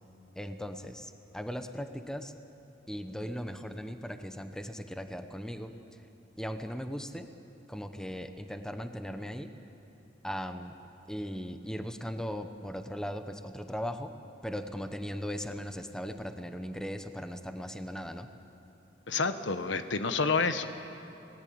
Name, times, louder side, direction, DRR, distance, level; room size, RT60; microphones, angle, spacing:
voice 1, 0.4-2.4 2.9-5.7 6.4-7.3 7.7-9.5 10.2-10.7 11.1-14.1 14.4-18.3, equal, 5° left, 7 dB, 1.1 m, -38 dB
voice 2, 19.1-20.7, left 4 dB, 80° left, 9 dB, 1.2 m, -29 dB
30.0 x 19.0 x 8.8 m, 2.9 s
head